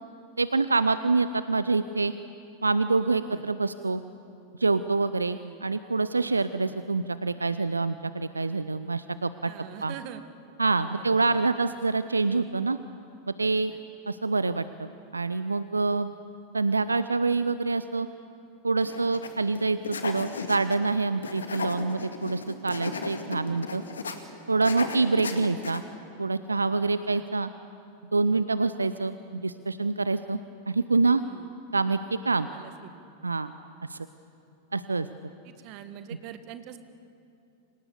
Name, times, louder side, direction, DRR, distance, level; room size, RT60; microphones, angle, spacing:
voice 1, 0.4-2.1 2.6-4.0 4.6-9.5 9.8-9.9 10.6-12.8 13.3-13.7 14.1-16.1 16.5-18.1 18.6-23.8 24.5-25.8 26.2-27.5 28.1-30.4 30.7-31.2 31.7-32.5 33.2-33.5 33.9-34.0 34.7-35.1, right 3 dB, 80° right, 13 dB, 0.6 m, -26 dB
voice 2, 5.3-5.6 6.4-6.8 9.4-10.2 11.1-11.4 13.7-13.8 21.2-21.4 24.8-24.9 27.1-27.3 28.3-28.4 31.2-31.5 32.4-33.0 35.4-36.8, right 11 dB, 45° right, 10 dB, 1.7 m, -45 dB
sound 1, 18.8-19.3 19.6-20.9 21.2-24.2 24.6-25.8, left 4 dB, 70° left, 2.1 m, -35 dB
29.5 x 26.0 x 7.0 m, 2.7 s
figure-of-eight pair, 90°, 0 cm